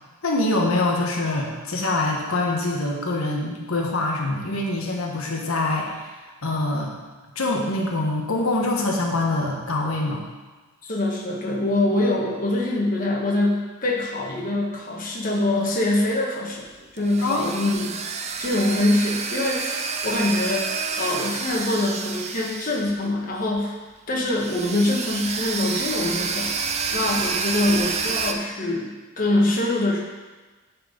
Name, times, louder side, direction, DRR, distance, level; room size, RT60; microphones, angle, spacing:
voice 1, 0.2-6.1 6.4-6.9 7.3-10.2 17.2-17.8, left 2 dB, 85° left, -1 dB, 1.4 m, -24 dB
voice 2, 10.9-16.6 16.9-18.0 18.4-20.7 21.0-23.8 24.1-26.5 26.9-30.0, left 1 dB, 40° left, -2 dB, 1.4 m, -24 dB
sound 1, 16.7-23.3 23.6-23.7 24.3-28.3, right 5 dB, 30° right, 0.5 m, -29 dB
10.5 x 4.5 x 5.3 m, 1.3 s
head